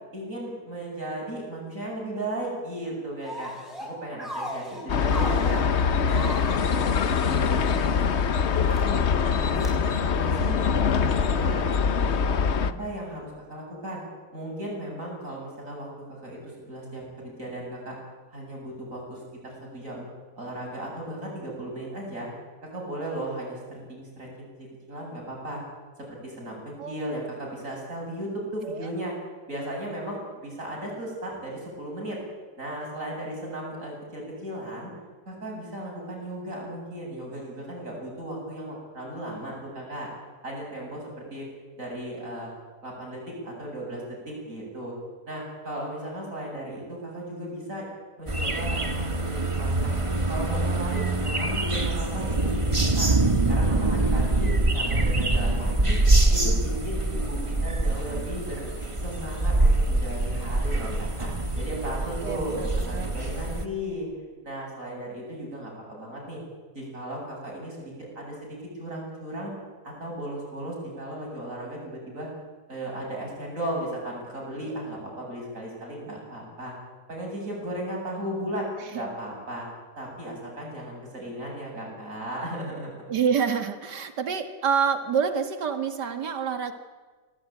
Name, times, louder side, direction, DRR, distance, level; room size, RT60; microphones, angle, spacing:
voice 1, 0.1-3.5 3.8-5.7 6.0-10.7 11.1-12.3 12.6-14.0 14.3-18.0 18.3-20.1 20.4-22.3 22.6-25.6 26.0-26.6 26.9-29.1 29.5-32.2 32.6-34.9 35.3-40.1 40.4-41.5 41.8-42.5 42.8-44.9 45.3-47.8 48.2-49.9 50.3-53.1 53.5-56.0 56.3-58.6 59.0-64.1 64.4-66.4 66.7-69.5 69.8-72.3 72.7-76.7 77.1-79.7 80.0-83.0, right 1 dB, 50° right, -2 dB, 8.6 m, -36 dB
sound 1, 3.2-3.9 4.2-5.6 6.1-7.9 8.5-8.8 9.5-9.7, equal, ahead, 6.7 m, -37 dB
sound 2, 4.9-12.7, left 6 dB, 50° left, 1.1 m, -23 dB
sound 3, 48.3-63.6, right 2 dB, 20° right, 1.5 m, -24 dB
voice 2, 62.2-63.1 78.9-79.1 83.1-86.7, right 6 dB, 85° right, 8 dB, 2.4 m, -27 dB
26.0 x 18.5 x 9.2 m, 1.4 s
omnidirectional pair, 1.8 m